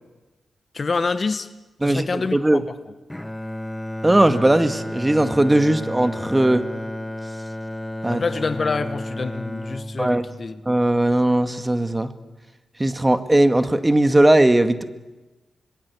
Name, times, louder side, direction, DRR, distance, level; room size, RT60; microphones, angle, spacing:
voice 1, 0.7-1.5 1.8-2.7 8.1-10.6, left 4 dB, 50° left, 12 dB, 1.2 m, -26 dB
voice 2, 1.8-2.6 4.0-6.7 8.0-8.2 10.0-10.2 10.7-12.1 12.8-14.8, right 1 dB, 20° right, 9 dB, 1.9 m, -18 dB
Bowed string instrument, 3.1-11.3, left 1 dB, 10° left, 1.3 m, -32 dB
25.5 x 21.0 x 8.5 m, 1.1 s
supercardioid pair, 50°, 0 cm